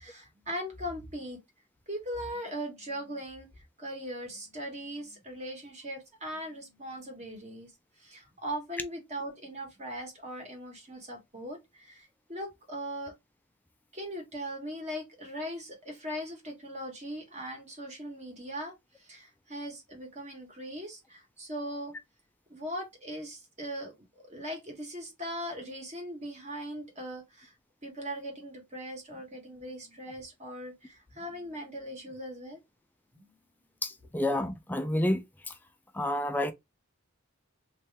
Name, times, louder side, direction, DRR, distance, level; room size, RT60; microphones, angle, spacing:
voice 1, 0.0-1.4 1.9-3.5 3.8-7.7 8.0-13.1 13.9-21.9 22.5-23.9 24.3-27.5 27.8-32.6 33.1-33.3, equal, 30° right, 1.4 m, -39 dB
voice 2, 33.8-35.5 35.9-36.5, left 1 dB, 10° left, 0.4 m, -29 dB
3.3 x 2.9 x 3.3 m
head